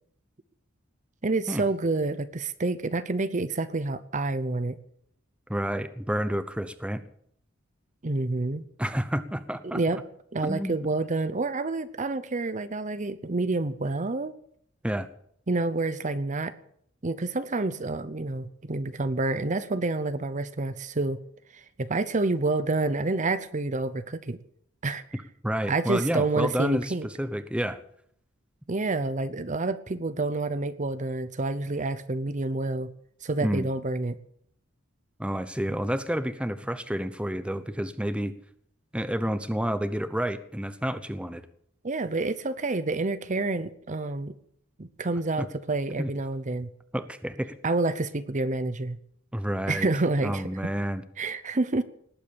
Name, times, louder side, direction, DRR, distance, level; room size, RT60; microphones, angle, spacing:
voice 1, 1.2-4.8 8.0-8.6 9.6-10.0 10.3-14.3 15.5-16.5 17.0-21.2 21.5-24.4 24.8-25.0 25.7-27.1 28.7-32.9 33.2-34.2 41.8-44.3 44.8-46.7 47.6-49.0 49.7-50.6 51.2-51.8, right 2 dB, 40° right, 13 dB, 0.8 m, -28 dB
voice 2, 5.5-7.0 8.8-10.0 10.4-10.8 14.8-15.1 25.4-27.8 33.4-33.7 35.2-38.3 38.9-41.4 45.4-45.5 46.0-46.1 46.9-47.5 49.3-49.9 50.2-51.0, equal, 5° right, 12 dB, 0.9 m, -29 dB
19.0 x 8.4 x 8.6 m, 0.67 s
head